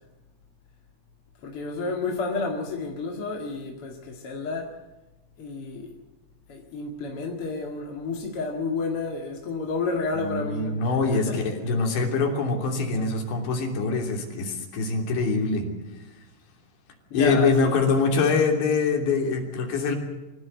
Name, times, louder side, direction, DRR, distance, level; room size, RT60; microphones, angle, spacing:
voice 1, 1.4-4.7 5.4-5.9 6.5-11.4 17.1-17.8, left 3 dB, 45° left, 1 dB, 2.1 m, -31 dB
voice 2, 10.2-15.7 17.1-20.0, left 4 dB, 90° left, 2 dB, 5.4 m, -24 dB
25.0 x 16.5 x 8.1 m, 1.1 s
omnidirectional pair, 5.0 m